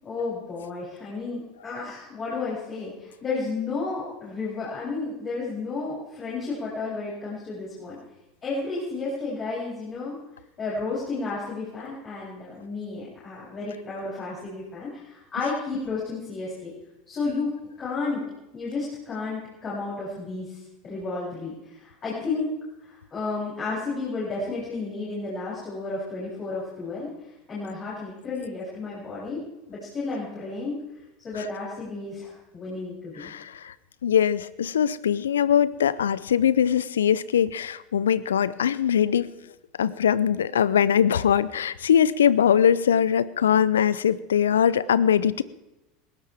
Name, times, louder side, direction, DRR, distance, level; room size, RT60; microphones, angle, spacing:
voice 1, 0.0-8.0 8.4-10.2 10.6-16.7 17.1-18.2 18.5-22.5 22.8-27.1 27.5-29.4 29.7-30.8 31.2-33.3, left 3 dB, 35° left, -8 dB, 7.8 m, -32 dB
voice 2, 33.2-33.7 34.0-39.4 39.8-45.4, left 8 dB, 80° left, 19 dB, 0.5 m, -22 dB
19.5 x 16.5 x 3.5 m, 0.95 s
hypercardioid pair, 80°, 0 cm